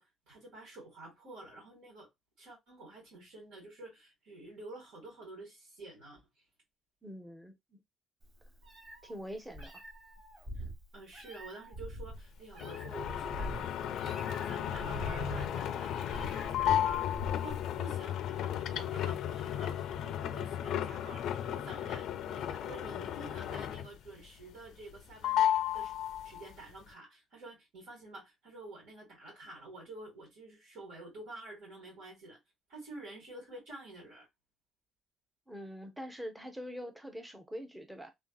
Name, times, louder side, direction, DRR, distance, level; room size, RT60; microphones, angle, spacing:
voice 1, 0.0-2.1 2.4-6.4 10.5-10.6 10.9-25.5 25.7-25.9 26.2-32.4 32.7-34.3, right 2 dB, 75° right, 1.9 m, -49 dB
voice 2, 7.0-7.8 9.0-9.8 35.5-38.1, equal, 5° right, 0.5 m, -44 dB
Meow, 8.2-17.6, right 1 dB, 40° right, 1.1 m, -44 dB
sound 1, 12.6-24.1 24.4-25.0 25.2-26.5, left 10 dB, 60° left, 0.3 m, -34 dB
3.2 x 2.5 x 2.2 m
cardioid pair, 170°, 0 cm